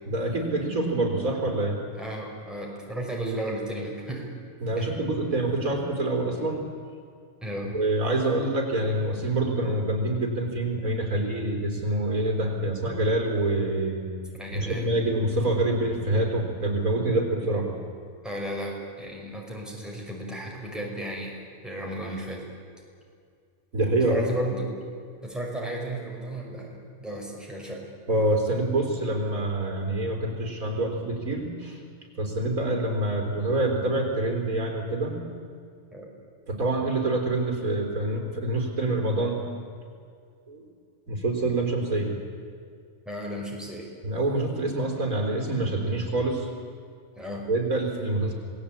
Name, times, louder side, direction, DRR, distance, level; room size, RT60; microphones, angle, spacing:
voice 1, 0.1-1.8 4.6-6.6 7.7-14.1 14.5-17.7 23.7-24.2 28.1-31.8 32.2-35.2 36.5-39.4 40.5-40.6 41.1-42.1 44.0-46.5 47.5-48.3, right 2 dB, 90° right, 2 dB, 4.2 m, -26 dB
voice 2, 2.0-4.3 4.8-5.0 7.4-7.7 14.4-14.9 18.2-22.4 24.1-24.7 25.2-27.8 35.9-36.1 43.1-43.9 47.2-47.4, right 1 dB, ahead, -2 dB, 5.4 m, -34 dB
27.5 x 19.5 x 8.6 m, 2.3 s
omnidirectional pair, 1.4 m